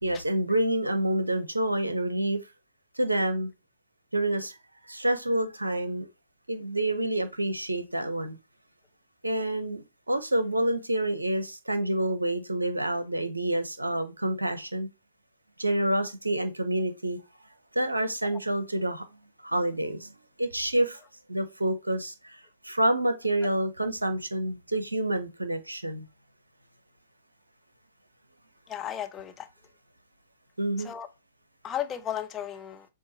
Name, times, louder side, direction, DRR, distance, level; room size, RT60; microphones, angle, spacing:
voice 1, 0.0-2.4 3.0-3.5 4.1-4.5 4.9-6.1 6.5-8.4 9.2-14.9 15.6-17.2 17.7-19.1 19.4-20.1 20.4-21.0 21.3-26.1 30.6-30.9, right 1 dB, 80° right, 0.7 m, -28 dB
voice 2, 28.7-29.5 30.8-31.1 31.6-32.9, left 10 dB, 20° left, 0.6 m, -34 dB
7.1 x 2.4 x 2.7 m
figure-of-eight pair, 110°, 0 cm